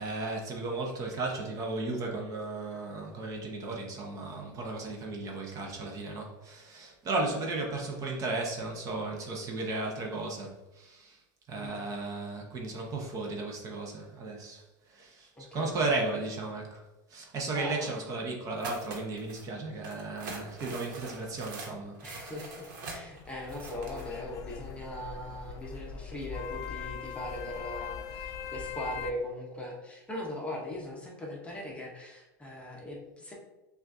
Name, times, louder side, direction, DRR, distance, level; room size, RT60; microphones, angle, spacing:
voice 1, 0.0-11.2 11.5-16.8 17.1-22.0, right 2 dB, 35° right, 0 dB, 0.7 m, -35 dB
voice 2, 11.5-11.8 15.3-15.8 17.5-17.9 22.0-33.3, left 1 dB, 10° left, -2 dB, 0.7 m, -40 dB
sound 1, 18.6-19.4 19.8-24.1, right 3 dB, 80° right, 1.0 m, -43 dB
sound 2, 23.1-29.1, left 7 dB, 35° left, 0.4 m, -41 dB
5.7 x 2.4 x 2.5 m, 1.0 s
supercardioid pair, 135°, 10 cm